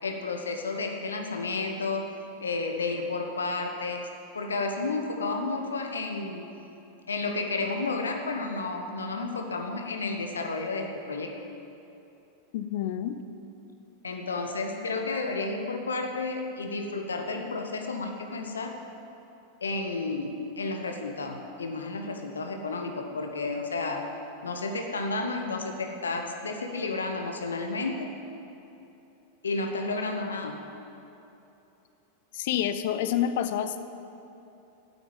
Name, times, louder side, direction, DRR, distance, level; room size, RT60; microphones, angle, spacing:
voice 1, 0.0-2.1 2.4-4.1 4.3-6.5 7.1-11.3 14.0-18.7 19.6-24.1 24.4-28.1 29.4-30.6, left 3 dB, 70° left, 4 dB, 1.1 m, -31 dB
voice 2, 12.5-13.2 32.3-33.8, left 10 dB, 50° left, 11 dB, 0.6 m, -28 dB
8.8 x 8.4 x 8.8 m, 2.9 s
figure-of-eight pair, 90°, 0 cm